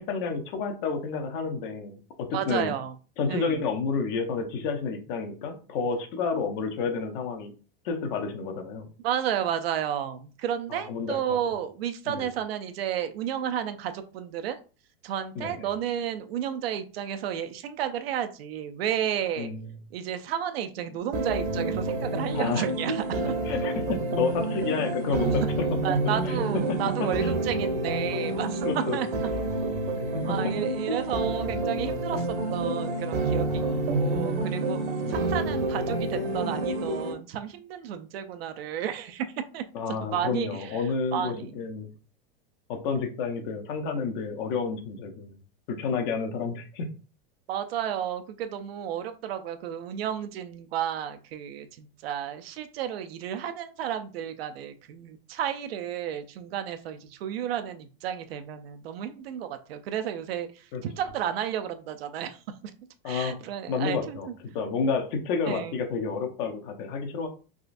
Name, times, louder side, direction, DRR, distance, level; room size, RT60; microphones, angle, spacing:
voice 1, 0.0-2.7 3.2-7.5 7.8-8.9 10.7-11.4 12.1-12.3 15.3-15.7 19.4-19.7 22.3-22.7 23.4-25.7 26.2-26.6 27.0-27.3 28.6-29.0 33.5-33.9 35.0-35.4 39.7-41.9 42.7-45.4 45.8-46.9 60.7-60.8 63.0-63.4 63.7-67.3, left 5 dB, 55° left, 5 dB, 0.8 m, -30 dB
voice 2, 2.3-2.9 3.3-3.6 9.0-14.6 15.0-19.5 19.9-23.3 25.8-29.1 30.2-33.6 33.9-34.8 35.1-39.3 39.5-39.6 40.1-40.7 41.1-41.5 47.5-62.4 63.1-64.3 65.4-65.7, right 9 dB, 85° right, 8 dB, 0.5 m, -32 dB
sound 1, 21.1-37.1, right 2 dB, 65° right, 1.0 m, -28 dB
3.7 x 2.5 x 2.4 m, 0.36 s
supercardioid pair, 130°, 29 cm